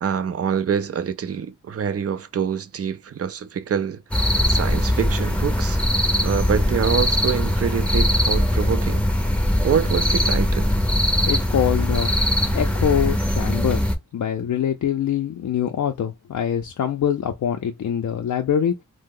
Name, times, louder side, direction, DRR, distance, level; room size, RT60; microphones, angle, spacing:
voice 1, 0.0-5.8 6.2-9.1 9.6-10.8, right 7 dB, 50° right, 0.4 m, -26 dB
sound 1, 4.1-14.0, left 1 dB, 5° left, 0.6 m, -21 dB
voice 2, 11.3-12.1 12.5-13.8 14.1-18.8, left 9 dB, 70° left, 0.5 m, -24 dB
2.7 x 2.0 x 3.6 m
wide cardioid pair, 70°, 30 cm